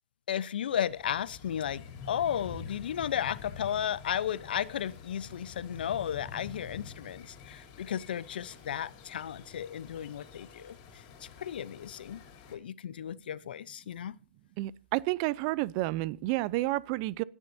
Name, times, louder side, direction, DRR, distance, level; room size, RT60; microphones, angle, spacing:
voice 1, 0.3-12.2 12.5-14.2, left 9 dB, 75° left, 0.7 m, -34 dB
sound 1, 0.7-12.6, left 6 dB, 40° left, 3.7 m, -48 dB
voice 2, 14.6-17.2, right 19 dB, 40° right, 0.5 m, -30 dB
26.0 x 9.9 x 2.7 m
hypercardioid pair, 135°, 5 cm